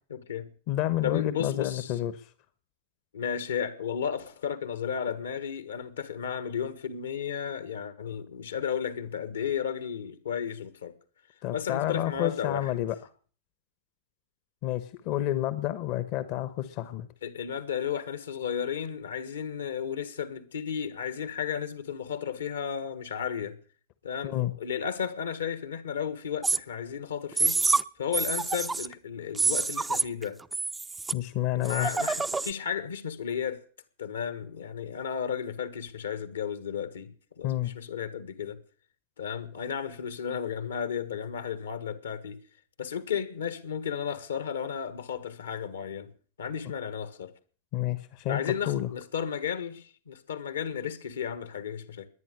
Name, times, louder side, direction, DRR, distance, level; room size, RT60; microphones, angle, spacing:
voice 1, 0.1-0.5 1.0-1.9 3.1-11.0 11.5-12.7 17.2-23.6 24.0-27.6 28.0-30.4 31.5-33.6 34.0-38.6 39.2-42.4 42.8-46.1 46.4-47.3 48.3-52.1, left 7 dB, 70° left, 1.5 m, -33 dB
voice 2, 0.7-2.3 11.4-13.0 14.6-17.1 24.2-24.5 31.1-31.9 37.4-37.7 47.7-48.9, left 14 dB, 45° left, 1.1 m, -29 dB
sound 1, 26.4-26.6 27.3-27.8 28.1-28.9 29.3-30.2 30.5-31.1 31.7-32.5, right 3 dB, 10° right, 0.6 m, -27 dB
21.0 x 9.3 x 6.6 m
figure-of-eight pair, 90°, 0 cm